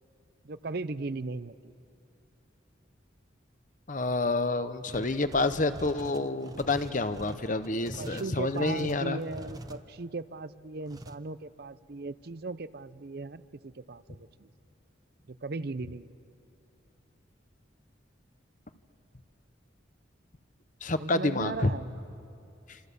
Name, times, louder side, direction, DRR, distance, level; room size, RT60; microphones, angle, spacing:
voice 1, 0.4-1.7 7.2-7.3 8.0-14.5 15.3-16.1 21.0-21.9, right 3 dB, 55° right, 14 dB, 0.6 m, -38 dB
voice 2, 3.9-9.2 20.8-21.7 22.7-22.8, left 2 dB, 45° left, 11 dB, 1.0 m, -28 dB
sound 1, 4.9-9.8 10.9-11.2, right 1 dB, 20° right, 0.8 m, -44 dB
27.5 x 27.0 x 7.0 m, 2.6 s
head